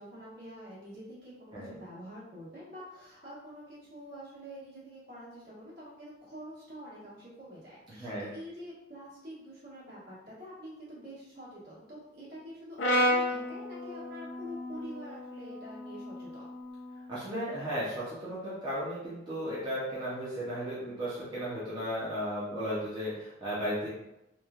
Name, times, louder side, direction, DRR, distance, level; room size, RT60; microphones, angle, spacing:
voice 1, 0.0-16.5, equal, 60° right, -8 dB, 1.3 m, -47 dB
Brass instrument, 12.8-17.0, left 1 dB, 75° left, 0.4 m, -32 dB
voice 2, 17.1-23.9, equal, 25° right, -9 dB, 0.6 m, -35 dB
3.0 x 2.2 x 2.4 m, 0.87 s
head